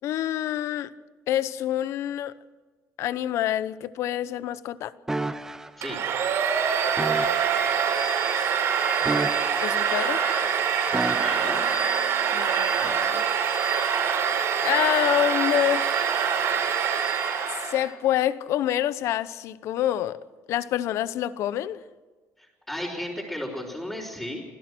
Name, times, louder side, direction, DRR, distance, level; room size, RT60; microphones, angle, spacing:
voice 1, 0.0-0.9 1.3-2.3 3.0-4.9 9.6-10.2 12.3-13.2 14.6-16.0 17.7-20.2 20.5-21.8, left 12 dB, 65° left, 0.8 m, -27 dB
sound 1, 5.1-5.7 7.0-7.6 9.0-9.9 10.9-11.7 12.8-13.1, right 2 dB, 10° right, 0.9 m, -31 dB
Domestic sounds home sounds, 5.8-17.9, right 7 dB, 65° right, 5.0 m, -25 dB
voice 2, 11.1-11.6 22.4-24.4, left 1 dB, 5° left, 4.1 m, -34 dB
26.0 x 16.5 x 6.2 m
cardioid pair, 140°, 5 cm